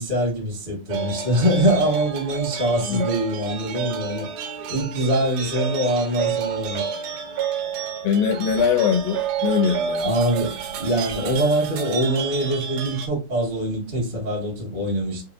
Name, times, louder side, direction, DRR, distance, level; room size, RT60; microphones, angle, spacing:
voice 1, 0.0-4.3 4.7-6.8 10.0-15.2, right 1 dB, 50° right, 0.6 m, -23 dB
sound 1, 0.9-13.1, right 8 dB, 75° right, 2.4 m, -30 dB
voice 2, 8.0-10.1, left 7 dB, 80° left, 2.0 m, -22 dB
6.4 x 2.2 x 2.8 m
omnidirectional pair, 4.9 m